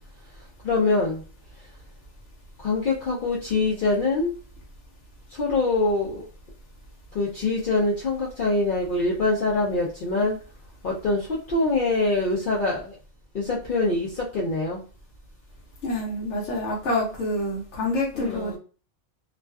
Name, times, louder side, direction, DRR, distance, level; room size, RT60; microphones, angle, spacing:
voice 1, 0.6-1.2 2.6-4.4 5.3-6.3 7.1-10.4 10.8-13.0 13.3-14.8 18.1-18.6, left 2 dB, 55° left, 0.6 m, -24 dB
voice 2, 15.8-18.6, left 1 dB, 85° left, 1.0 m, -27 dB
2.4 x 2.3 x 2.2 m
omnidirectional pair, 1.2 m